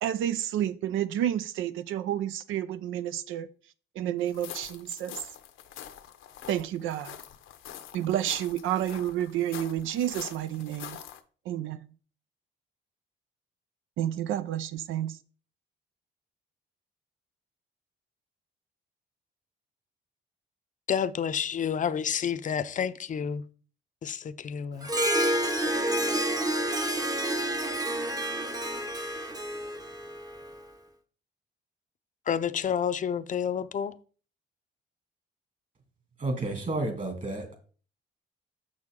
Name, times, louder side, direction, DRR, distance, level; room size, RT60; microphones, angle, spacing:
voice 1, 0.0-3.5 3.9-5.2 6.5-7.2 7.9-11.0 11.5-11.9 14.0-15.2, right 11 dB, 85° right, 0.6 m, -30 dB
sound 1, 4.3-11.2, left 10 dB, 80° left, 0.8 m, -45 dB
voice 2, 20.9-23.4 24.0-24.9 32.3-34.0, left 8 dB, 40° left, 0.5 m, -29 dB
Harp, 24.8-30.5, right 1 dB, 20° right, 0.8 m, -29 dB
voice 3, 36.2-37.5, right 2 dB, 40° right, 2.4 m, -31 dB
6.3 x 6.2 x 3.7 m
cardioid pair, 90°, 20 cm